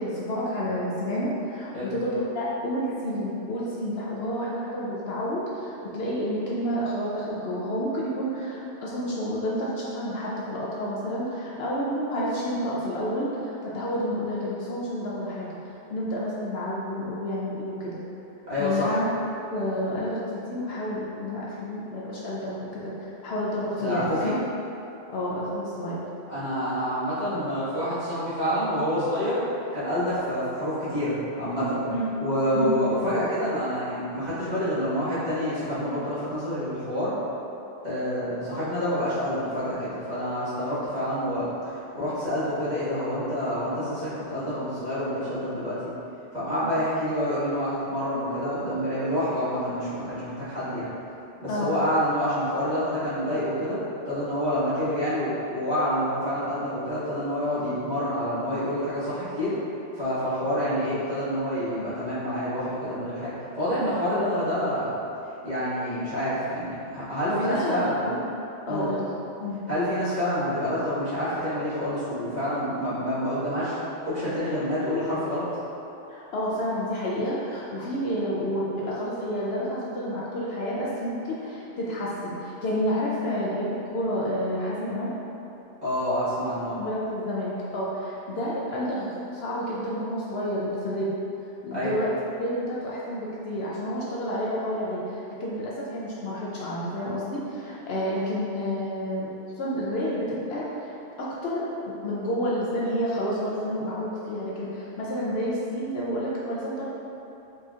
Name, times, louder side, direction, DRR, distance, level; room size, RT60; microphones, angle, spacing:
voice 1, 0.0-15.6 15.9-18.0 18.6-19.1 19.5-24.4 25.1-26.0 31.9-32.1 32.5-32.7 38.5-38.6 51.5-51.8 67.3-69.1 69.4-69.6 76.1-85.1 86.8-91.1 91.6-92.1 92.4-99.3 99.6-106.8, equal, 65° left, -6 dB, 0.8 m, -30 dB
voice 2, 18.5-18.9 23.8-24.3 26.3-29.4 29.7-31.8 32.2-37.1 37.8-41.5 41.9-45.8 46.3-50.9 51.4-53.8 54.0-59.5 60.0-64.9 65.4-68.0 68.6-68.9 69.7-73.8 74.0-75.4 85.8-86.8 91.7-91.9, equal, 35° right, -14 dB, 1.6 m, -27 dB
4.3 x 3.9 x 2.4 m, 2.9 s
omnidirectional pair, 1.2 m